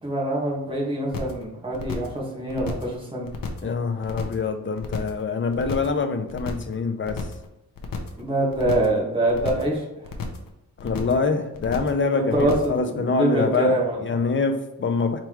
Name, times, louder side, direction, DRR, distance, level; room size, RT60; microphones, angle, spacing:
voice 1, 0.0-3.3 8.2-10.1 11.9-14.2, right 1 dB, 15° right, -5 dB, 1.6 m, -25 dB
sound 1, 1.1-1.4 1.7-2.2 2.5-2.9 3.2-3.7 4.0-4.5 4.8-5.2 5.5-6.0 6.3-6.7 7.0-7.5 7.8-8.2 8.5-9.0 9.3-9.7 10.0-10.5 10.8-11.2 11.5-12.0 12.3-12.8, left 5 dB, 70° left, 0.8 m, -33 dB
voice 2, 3.6-7.3 10.8-15.2, left 4 dB, 35° left, 7 dB, 0.5 m, -25 dB
4.5 x 3.8 x 3.0 m, 0.93 s
wide cardioid pair, 130°, 34 cm